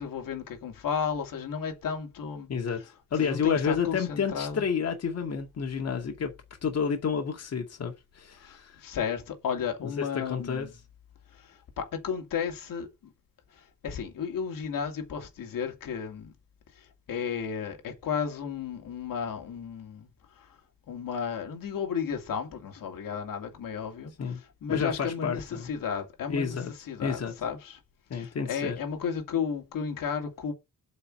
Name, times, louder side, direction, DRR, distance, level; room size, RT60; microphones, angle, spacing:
voice 1, 0.0-2.5 3.2-4.6 8.4-10.7 11.3-12.9 13.5-16.3 16.7-20.1 20.4-20.6 20.9-24.1 24.6-26.6 26.9-27.8 28.1-30.5, left 7 dB, 85° left, 2.6 m, -33 dB
voice 2, 2.5-2.8 3.1-6.3 6.6-8.8 10.0-10.7 24.2-24.4 24.7-25.7 26.3-26.7 27.0-27.3 28.1-28.8, left 6 dB, 50° left, 2.2 m, -30 dB
8.3 x 5.4 x 7.7 m
wide cardioid pair, 150°, 32 cm